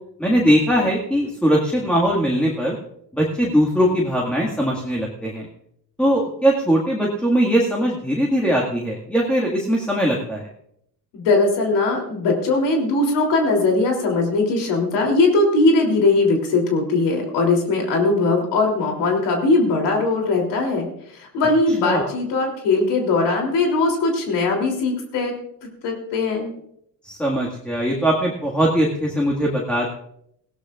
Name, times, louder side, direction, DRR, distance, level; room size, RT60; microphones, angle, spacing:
voice 1, 0.2-2.8 3.1-5.5 6.0-10.5 21.8-22.1 27.0-29.9, equal, 5° left, -4 dB, 1.9 m, -20 dB
voice 2, 11.1-25.3 25.6-26.5, left 3 dB, 80° left, 0 dB, 3.3 m, -20 dB
19.5 x 17.0 x 2.5 m, 0.72 s
cardioid pair, 140°, 41 cm